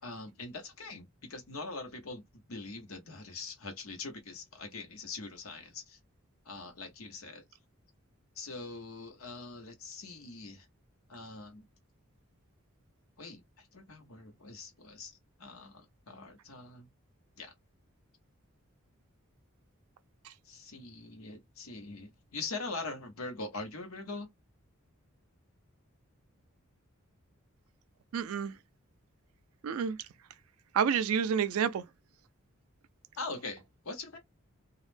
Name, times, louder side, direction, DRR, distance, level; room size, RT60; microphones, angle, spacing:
voice 1, 0.0-2.2 2.5-6.0 6.4-7.4 8.4-10.7 11.1-11.7 13.2-16.9 17.4-17.5 20.4-24.3 33.2-34.2, left 3 dB, 85° left, 0.9 m, -43 dB
voice 2, 28.1-28.5 29.6-30.0 30.7-31.8, right 7 dB, 85° right, 0.3 m, -29 dB
2.3 x 2.0 x 3.2 m
head